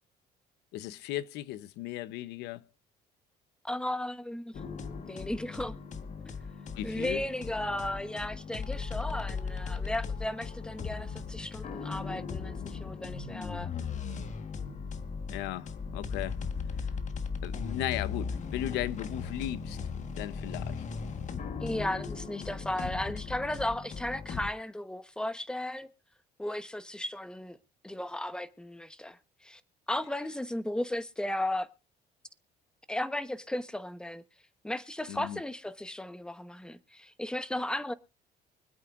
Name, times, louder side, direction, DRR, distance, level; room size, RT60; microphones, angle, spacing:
voice 1, 0.7-2.6 6.8-7.2 15.3-16.4 17.4-19.8 20.2-20.8 35.1-35.4, left 13 dB, 90° left, 0.8 m, -36 dB
voice 2, 3.6-4.5 5.1-5.7 6.2-6.3 6.8-13.7 21.6-25.9 26.4-27.6 27.8-29.6 29.9-31.7 32.9-34.2 34.6-37.9, left 1 dB, 5° left, 1.0 m, -35 dB
sound 1, 4.5-24.5, left 5 dB, 45° left, 1.4 m, -37 dB
24.5 x 8.6 x 2.5 m
cardioid pair, 110°, 17 cm